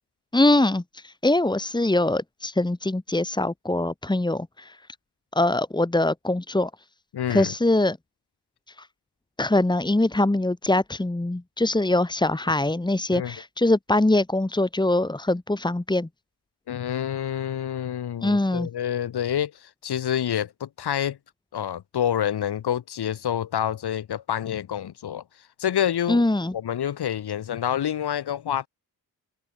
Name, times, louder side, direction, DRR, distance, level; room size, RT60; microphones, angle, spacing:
voice 1, 0.3-4.8 5.3-6.7 7.3-8.0 8.8-8.9 9.4-16.1 18.2-18.7 26.1-26.5, left 2 dB, 10° left, 3.8 m, -23 dB
voice 2, 7.1-7.5 13.1-13.4 16.7-21.2 21.5-25.2 25.6-26.2 26.5-28.7, left 10 dB, 80° left, 4.0 m, -27 dB
wide cardioid pair, 130°, 38 cm